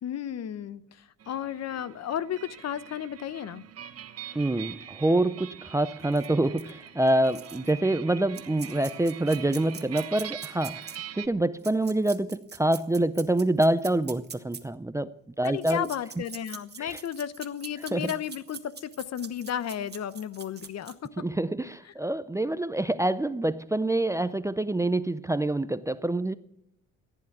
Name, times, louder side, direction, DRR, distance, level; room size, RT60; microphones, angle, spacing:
voice 1, 0.0-3.7 15.4-21.2, left 9 dB, 60° left, 16 dB, 0.8 m, -34 dB
sound 1, 1.2-11.3, right 10 dB, 50° right, 1.0 m, -43 dB
voice 2, 4.3-15.9 16.8-17.0 17.9-18.1 21.2-26.4, right 1 dB, 10° right, 14 dB, 0.5 m, -26 dB
sound 2, 6.1-6.3 6.6-6.7 7.1-7.7 8.3-11.0 11.6-14.6 15.4-21.1, right 6 dB, 35° right, 1.5 m, -43 dB
15.0 x 10.0 x 5.9 m, 0.84 s
cardioid pair, 90°, 30 cm